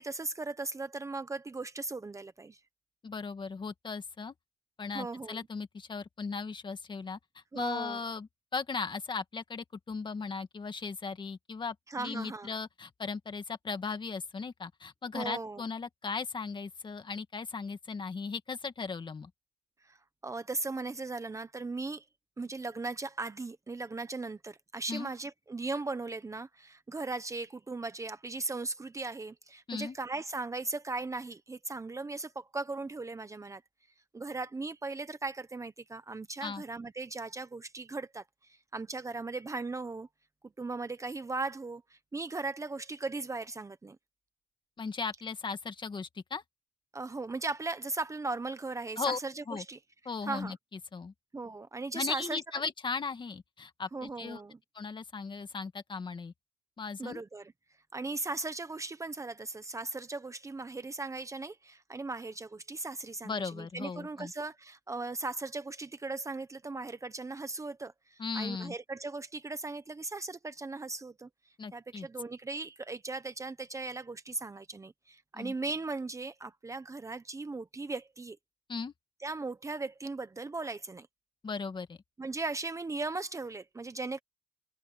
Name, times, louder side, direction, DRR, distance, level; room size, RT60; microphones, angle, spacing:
voice 1, 0.0-2.6 4.9-5.4 7.5-8.0 11.9-12.5 15.1-15.6 19.8-20.0 20.2-22.0 22.4-33.6 34.1-40.1 40.6-44.0 46.9-49.8 50.2-50.5 51.3-52.4 53.9-54.6 57.0-57.5 57.9-71.3 71.7-78.4 79.2-81.1 82.2-84.2, right 3 dB, 20° right, 1.1 m, -38 dB
voice 2, 3.0-4.3 4.8-7.2 7.5-19.3 24.9-25.1 29.7-30.0 36.4-36.6 44.8-46.4 49.0-49.2 49.5-49.6 50.1-51.1 51.9-54.4 54.7-56.3 56.8-57.2 63.2-64.3 68.2-68.7 71.6-72.1 75.3-75.5 78.7-78.9 81.4-82.0, left 5 dB, 30° left, 2.0 m, -37 dB
cardioid pair, 110°, 17 cm